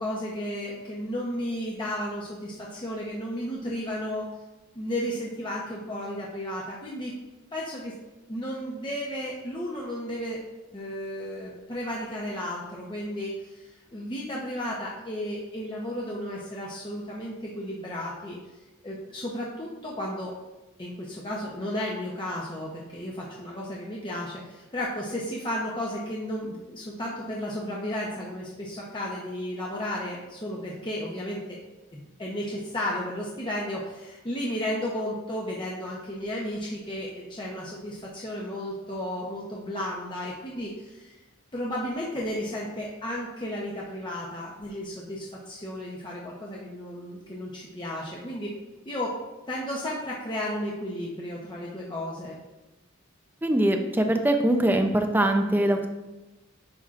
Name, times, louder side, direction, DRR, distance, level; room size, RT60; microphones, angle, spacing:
voice 1, 0.0-4.3 4.7-7.1 7.5-7.9 8.3-10.4 10.7-18.4 18.8-20.3 20.8-31.6 31.9-41.1 41.5-48.5 48.8-49.1 49.5-52.4, left 1 dB, 25° left, -4 dB, 0.8 m, -33 dB
voice 2, 53.4-55.9, right 1 dB, 10° right, 5 dB, 0.5 m, -22 dB
9.8 x 6.0 x 2.5 m, 1.1 s
head